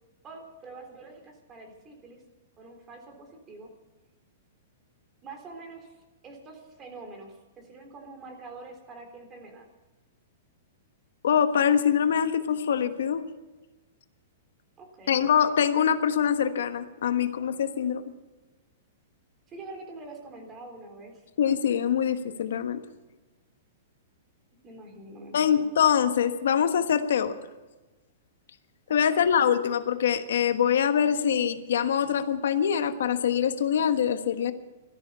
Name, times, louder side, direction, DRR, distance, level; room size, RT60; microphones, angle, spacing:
voice 1, 0.2-2.2 2.6-3.7 5.2-5.9 6.2-9.7 14.8-15.3 19.5-21.3 24.6-25.7 28.9-29.3, right 3 dB, 20° right, 3 dB, 3.6 m, -45 dB
voice 2, 11.2-13.2 15.1-18.0 21.4-22.8 25.3-27.3 28.9-34.5, left 8 dB, 80° left, 8 dB, 1.3 m, -24 dB
17.5 x 13.5 x 5.6 m, 1.2 s
hypercardioid pair, 160°, 0 cm